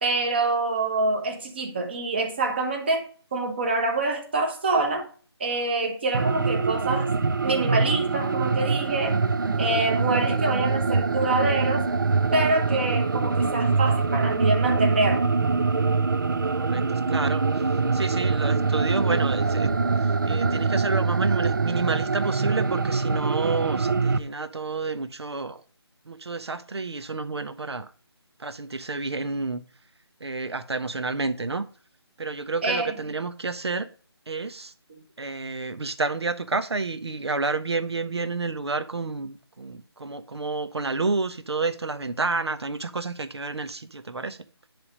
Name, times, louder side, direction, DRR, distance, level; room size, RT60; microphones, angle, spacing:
voice 1, 0.0-3.1 3.3-5.1 5.4-7.1 7.4-9.2 9.6-11.9 12.3-15.2 32.6-33.0, right 2 dB, 25° right, 1.3 m, -26 dB
sound 1, 6.1-24.2, right 4 dB, 50° right, 0.6 m, -24 dB
voice 2, 16.5-17.6 17.9-19.7 20.0-25.6 26.0-27.9 28.4-29.6 30.2-31.6 32.2-33.9 34.3-34.7 35.2-44.4, right 3 dB, 70° right, 1.2 m, -30 dB
10.5 x 3.6 x 6.4 m
figure-of-eight pair, 170°, 14 cm